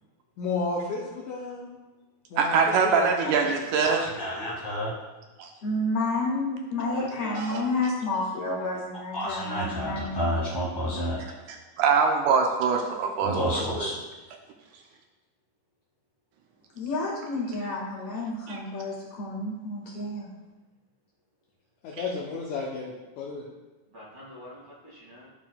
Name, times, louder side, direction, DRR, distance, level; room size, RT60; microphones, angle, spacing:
voice 1, 0.4-1.7 2.3-3.5 21.8-23.5, left 3 dB, 75° left, -3 dB, 1.9 m, -33 dB
voice 2, 2.4-4.1 5.4-5.5 7.4-7.6 11.8-13.9 18.5-18.6, right 5 dB, 80° right, 2 dB, 1.9 m, -23 dB
voice 3, 3.8-4.9 9.1-11.1 13.2-14.0, equal, 15° left, -9 dB, 0.7 m, -30 dB
voice 4, 5.6-10.3 16.7-20.3, left 2 dB, 55° left, -4 dB, 2.4 m, -30 dB
voice 5, 6.8-7.9 23.9-25.3, left 1 dB, 40° right, -7 dB, 2.4 m, -43 dB
11.5 x 4.4 x 2.2 m, 1.2 s
omnidirectional pair, 3.8 m